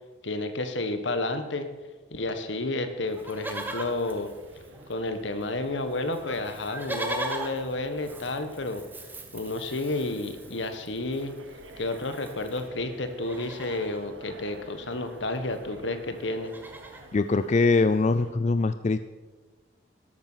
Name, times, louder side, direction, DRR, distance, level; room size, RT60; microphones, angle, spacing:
voice 1, 0.2-1.7 2.1-4.3 4.9-8.8 9.3-11.3 11.8-16.5, left 2 dB, 75° left, 8 dB, 1.4 m, -31 dB
sound 1, 3.0-18.3, right 2 dB, 90° right, 1.5 m, -50 dB
Livestock farm animals working animals, 3.1-5.1 5.4-5.5 5.7-12.7 13.1-14.0 15.2-15.3 15.5-15.8 16.1-17.1 17.7-17.8, right 1 dB, 10° right, 1.3 m, -40 dB
voice 2, 17.1-19.0, left 3 dB, 40° left, 12 dB, 0.4 m, -22 dB
13.0 x 12.0 x 5.7 m, 1.3 s
head